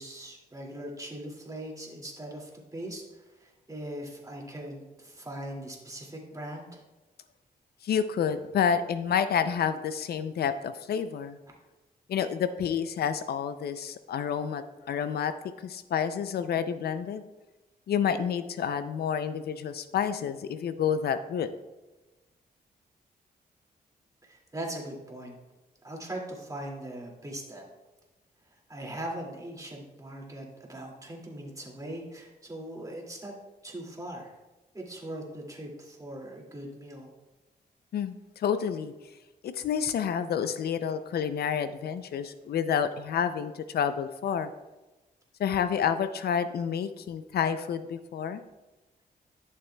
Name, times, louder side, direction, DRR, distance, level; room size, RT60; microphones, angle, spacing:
voice 1, 0.0-6.8 11.5-11.6 24.2-25.4 25.8-27.6 28.7-33.4 33.6-34.3 34.7-37.1, right 1 dB, 20° right, -1 dB, 2.2 m, -40 dB
voice 2, 7.8-11.4 12.1-15.4 15.6-17.3 17.9-21.5 37.9-38.9 39.4-44.5 45.4-48.4, left 7 dB, 75° left, 11 dB, 0.4 m, -29 dB
11.5 x 6.8 x 2.2 m, 1.1 s
cardioid pair, 80°, 17 cm